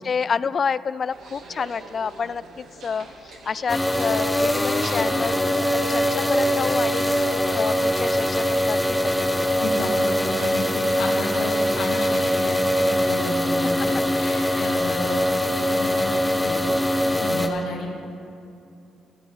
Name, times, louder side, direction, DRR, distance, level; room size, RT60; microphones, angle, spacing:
voice 1, 0.0-5.4 5.7-9.5 14.6-14.7, left 6 dB, 45° left, 19 dB, 0.3 m, -29 dB
sound 1, 1.1-11.7, right 3 dB, 75° right, 2.0 m, -43 dB
sound 2, 3.7-17.5, equal, 10° left, 0.9 m, -22 dB
voice 2, 9.6-15.2 15.7-18.1, left 2 dB, 75° left, 0 dB, 2.3 m, -32 dB
25.0 x 9.7 x 3.5 m, 2.6 s
cardioid pair, 90°, 0 cm